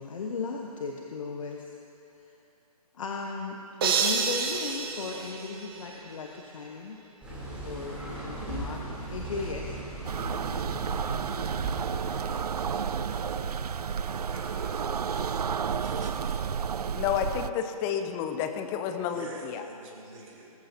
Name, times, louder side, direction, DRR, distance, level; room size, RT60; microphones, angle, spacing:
voice 1, 0.0-1.7 2.2-2.3 2.9-7.0 7.6-8.8 9.1-9.8, left 4 dB, 55° left, 1 dB, 1.0 m, -36 dB
sound 1, 3.8-6.1, right 6 dB, 35° right, 1.1 m, -29 dB
sound 2, 7.2-12.2, right 1 dB, 5° right, 3.1 m, -38 dB
sound 3, 10.0-17.5, right 7 dB, 75° right, 0.4 m, -31 dB
voice 2, 12.1-13.7 14.3-15.2 15.8-16.2 19.1-20.5, right 2 dB, 55° right, -3 dB, 3.3 m, -45 dB
voice 3, 16.9-19.6, left 8 dB, 10° left, 7 dB, 0.4 m, -30 dB
19.5 x 14.0 x 2.7 m, 2.8 s
figure-of-eight pair, 135°, 20 cm